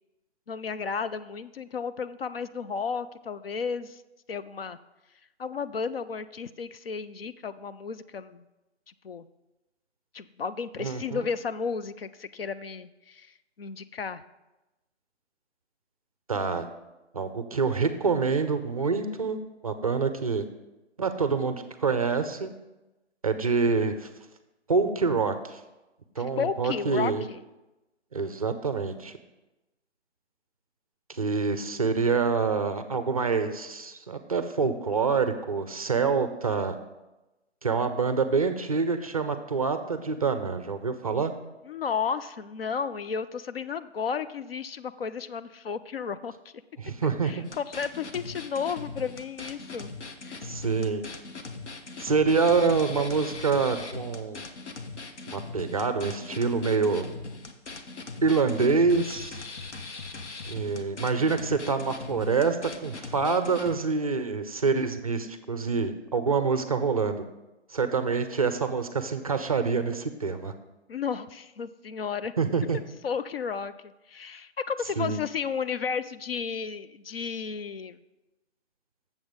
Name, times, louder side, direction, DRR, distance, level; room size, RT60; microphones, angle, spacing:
voice 1, 0.5-4.0 4.3-4.8 5.4-8.4 9.0-9.3 10.1-13.3 13.6-14.2 26.4-27.4 41.7-46.3 47.2-49.9 50.2-50.4 70.9-72.3 73.0-73.7 74.1-78.0, left 6 dB, 55° left, 13 dB, 0.4 m, -33 dB
voice 2, 10.8-11.2 16.3-16.7 17.1-19.4 19.6-20.4 21.0-22.5 23.2-24.1 24.7-25.6 26.2-27.3 28.1-29.1 31.1-36.8 37.6-41.3 46.8-47.4 50.4-51.0 52.0-54.4 55.3-57.1 58.2-59.4 60.5-67.2 67.7-70.5 72.4-72.8 75.0-75.2, right 4 dB, 30° right, 9 dB, 0.5 m, -26 dB
sound 1, 47.4-63.8, left 3 dB, 75° left, 1.2 m, -40 dB
7.7 x 7.3 x 5.0 m, 1.0 s
hypercardioid pair, 160°, 35 cm